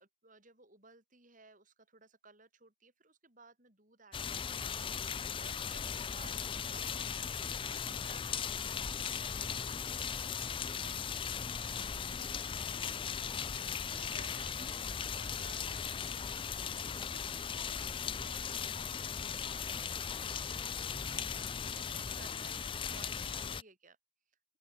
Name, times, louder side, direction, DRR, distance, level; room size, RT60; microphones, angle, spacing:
voice 1, 0.0-7.3 7.9-11.3 11.9-24.0, right 4 dB, 40° right, 5.8 m, -59 dB
sound 1, 4.1-23.6, left 7 dB, 25° left, 0.4 m, -38 dB
open air
head